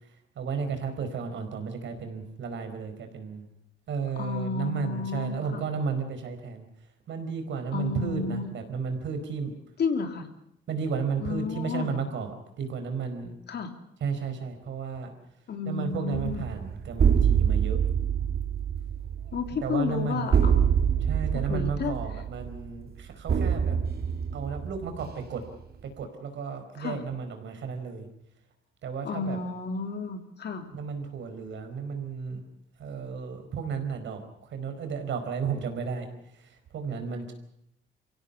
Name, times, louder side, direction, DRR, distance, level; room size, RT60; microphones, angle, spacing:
voice 1, 0.4-3.5 3.9-6.7 7.1-9.5 10.7-12.3 12.6-13.3 14.0-15.1 15.7-17.8 19.6-20.3 21.0-23.8 24.3-25.4 26.0-28.1 28.8-29.4 30.7-32.4 32.8-34.2 34.5-36.1 36.7-37.3, right 5 dB, 70° right, 6 dB, 4.6 m, -33 dB
voice 2, 4.2-5.6 7.7-8.5 9.8-10.3 11.2-11.9 13.5-13.7 15.5-16.4 19.3-20.7 21.3-22.0 26.8-27.0 29.0-30.7, left 5 dB, 55° left, 6 dB, 3.1 m, -32 dB
sound 1, 16.1-25.6, right 7 dB, 50° right, 2.6 m, -26 dB
24.5 x 16.5 x 8.5 m, 0.78 s
cardioid pair, 90°, 20 cm